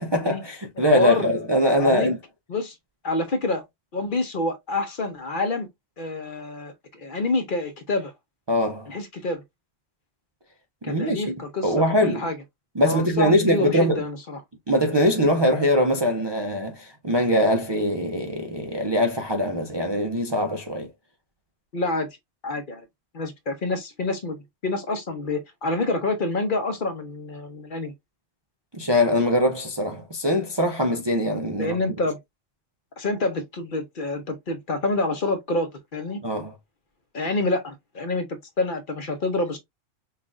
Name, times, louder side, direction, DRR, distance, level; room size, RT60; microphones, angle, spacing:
voice 1, 0.0-2.2 8.5-8.9 10.8-11.3 11.6-12.2 12.8-14.0 14.7-20.9 28.8-31.8 36.2-36.5, equal, 30° right, 0.5 m, -22 dB
voice 2, 0.8-1.3 1.8-2.1 2.5-2.7 3.0-3.6 3.9-5.7 6.0-8.1 8.9-9.4 10.8-12.4 12.8-14.4 21.7-22.1 22.4-22.8 23.1-27.9 31.6-32.2 33.0-36.2 37.1-39.6, left 2 dB, 50° left, 0.9 m, -27 dB
5.6 x 2.5 x 2.4 m
omnidirectional pair, 1.2 m